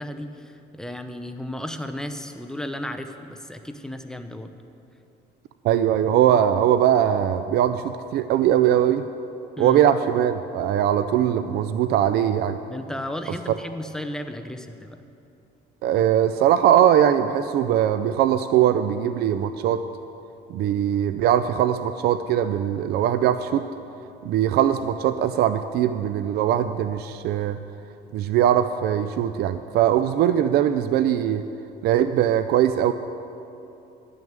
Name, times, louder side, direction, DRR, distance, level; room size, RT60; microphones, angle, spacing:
voice 1, 0.0-4.5 9.6-9.8 12.7-15.0, left 1 dB, 5° left, 7 dB, 0.7 m, -34 dB
voice 2, 5.6-9.0 9.6-12.6 15.8-19.8 20.5-23.6 24.2-27.6 28.1-31.4 31.8-32.9, right 10 dB, 70° right, 10 dB, 0.4 m, -21 dB
10.5 x 6.4 x 8.8 m, 2.8 s
cardioid pair, 110°, 17 cm